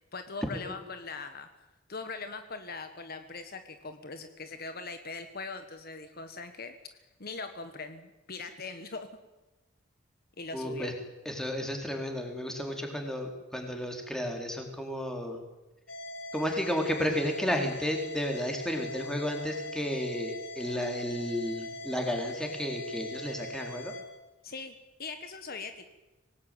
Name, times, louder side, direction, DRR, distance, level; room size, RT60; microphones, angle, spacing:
voice 1, 0.1-1.5 1.9-6.7 7.2-9.1 10.4-10.9 24.4-25.9, left 4 dB, 50° left, 8 dB, 1.6 m, -41 dB
voice 2, 10.5-10.9 11.3-15.4 16.3-23.9, equal, 5° left, 3 dB, 4.1 m, -32 dB
sound 1, 15.9-24.0, left 1 dB, 75° left, 5.4 m, -41 dB
25.0 x 19.0 x 9.4 m, 1.1 s
head